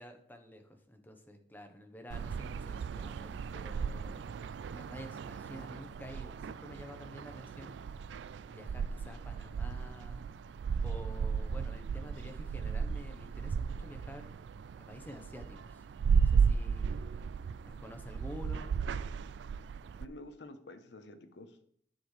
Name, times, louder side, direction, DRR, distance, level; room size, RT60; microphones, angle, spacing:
voice 1, 0.0-4.2 4.6-7.8 8.5-10.3 10.8-14.3 14.8-15.8 16.2-17.0 17.6-18.8, left 1 dB, 10° left, 5 dB, 0.9 m, -49 dB
sound 1, 2.1-20.1, right 6 dB, 85° right, 0.3 m, -35 dB
voice 2, 20.0-21.6, left 1 dB, 80° left, 9 dB, 0.9 m, -49 dB
10.0 x 7.0 x 3.2 m, 0.63 s
head